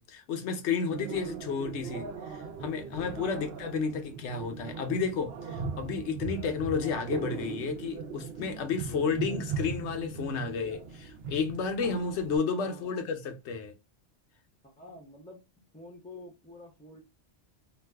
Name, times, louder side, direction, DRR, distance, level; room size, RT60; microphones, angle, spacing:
voice 1, 0.0-13.7, left 5 dB, 80° left, 0.9 m, -32 dB
sound 1, 0.9-12.4, right 5 dB, 65° right, 0.8 m, -39 dB
voice 2, 3.1-3.6 8.8-9.5 12.5-13.1 14.6-15.4 15.7-17.0, left 1 dB, 10° left, 0.5 m, -48 dB
2.5 x 2.3 x 3.3 m
omnidirectional pair, 1.1 m